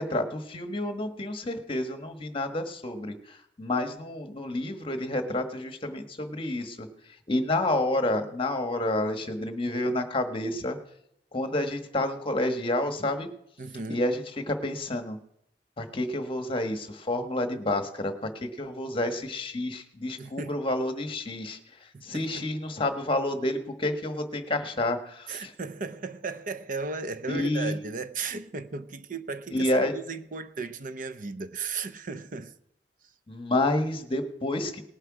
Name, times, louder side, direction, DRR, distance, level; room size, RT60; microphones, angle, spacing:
voice 1, 0.0-10.8 11.3-13.3 13.9-15.2 15.8-25.5 27.3-27.7 29.5-29.9 33.3-34.8, left 1 dB, 30° left, 1.3 m, -29 dB
voice 2, 13.6-14.0 20.2-20.5 21.9-22.5 25.3-32.5, right 4 dB, 50° right, 0.7 m, -36 dB
19.0 x 7.9 x 4.8 m
head